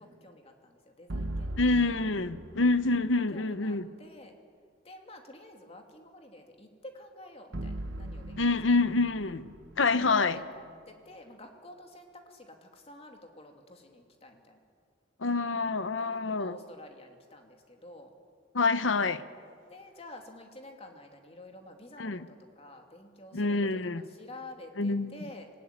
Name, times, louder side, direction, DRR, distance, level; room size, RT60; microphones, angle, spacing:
voice 1, 0.0-1.8 3.2-4.3 4.8-8.6 10.1-14.6 16.0-18.1 19.7-23.8 24.1-25.5, left 1 dB, 30° left, 4 dB, 2.7 m, -50 dB
sound 1, 1.1-3.3 7.5-10.8, right 1 dB, 70° right, 1.2 m, -39 dB
voice 2, 1.6-3.9 8.4-10.4 15.2-16.6 18.5-19.2 22.0-22.2 23.3-24.0 24.8-25.1, left 3 dB, 85° left, 13 dB, 1.0 m, -27 dB
26.0 x 19.0 x 9.5 m, 2.2 s
head